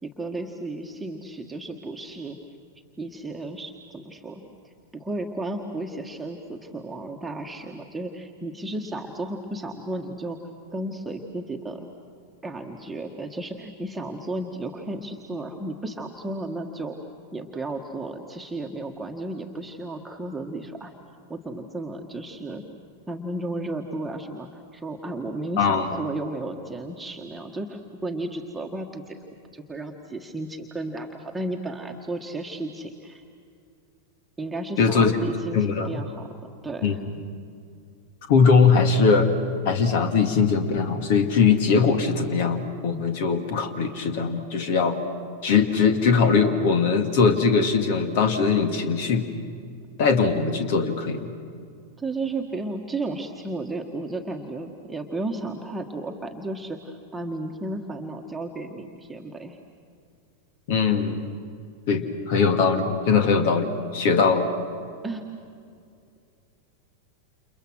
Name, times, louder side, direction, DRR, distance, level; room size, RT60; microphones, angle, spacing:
voice 1, 0.0-2.4 3.0-10.4 10.7-11.9 12.4-17.0 17.3-20.9 21.3-22.6 23.1-29.2 29.5-33.2 34.4-36.3 36.6-37.0 52.0-59.6 65.0-65.2, right 2 dB, 5° right, 1 dB, 1.7 m, -33 dB
voice 2, 25.6-25.9 34.8-35.1 35.5-36.0 36.8-36.9 38.3-39.3 39.7-45.0 45.4-49.3 50.0-51.3 60.7-61.3 61.9-64.5, left 5 dB, 50° left, 7 dB, 2.1 m, -21 dB
29.5 x 29.5 x 6.3 m, 2.3 s
figure-of-eight pair, 90°, 0 cm